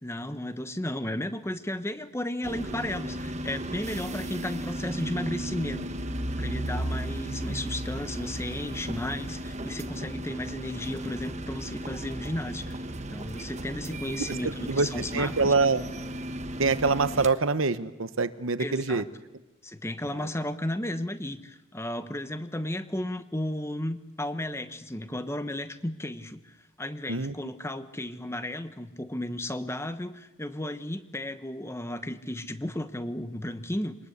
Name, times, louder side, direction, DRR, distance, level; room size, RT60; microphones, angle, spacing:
voice 1, 0.0-5.8 6.4-12.8 13.1-15.5 18.6-19.1 19.6-34.0, left 1 dB, 15° left, 11 dB, 1.1 m, -34 dB
sound 1, 2.4-17.3, right 1 dB, 35° right, 1.3 m, -35 dB
voice 2, 15.1-15.8 16.6-19.0 27.1-27.3, right 4 dB, 70° right, 13 dB, 1.1 m, -25 dB
24.5 x 19.5 x 8.2 m, 1.1 s
head